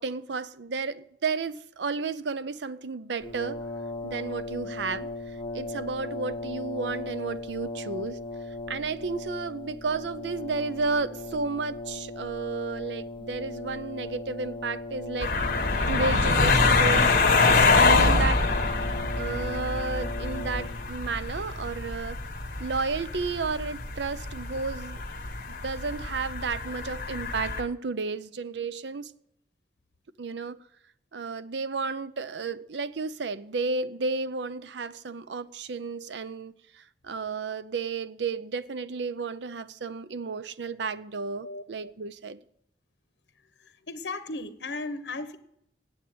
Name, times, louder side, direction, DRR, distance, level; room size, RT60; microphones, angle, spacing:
voice 1, 0.0-3.6 4.0-5.1 5.5-8.2 8.7-15.3 15.9-18.4 19.2-22.2 22.6-25.0 25.6-29.1 30.2-30.6 31.1-42.4, right 4 dB, 80° right, 0.6 m, -32 dB
Brass instrument, 3.2-21.0, left 2 dB, 30° left, 1.1 m, -38 dB
sound 1, 15.2-27.6, left 3 dB, 50° left, 1.2 m, -25 dB
voice 2, 43.9-45.4, left 3 dB, 75° left, 0.9 m, -35 dB
8.5 x 8.2 x 9.0 m
head